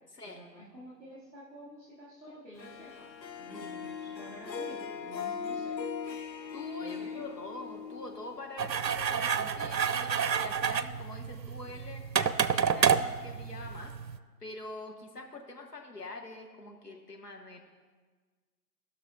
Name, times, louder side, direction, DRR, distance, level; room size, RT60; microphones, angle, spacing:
voice 1, 0.2-3.1 3.4-5.8 6.8-7.3, equal, 5° left, -19 dB, 1.6 m, -49 dB
Harp, 2.6-8.9, left 6 dB, 90° left, 0.7 m, -39 dB
voice 2, 3.5-3.9 6.5-13.9 14.4-17.6, left 2 dB, 70° left, 2 dB, 1.5 m, -45 dB
sound 1, 8.6-14.2, right 7 dB, 80° right, 0.6 m, -29 dB
14.5 x 6.4 x 2.7 m, 1.4 s
figure-of-eight pair, 160°, 50 cm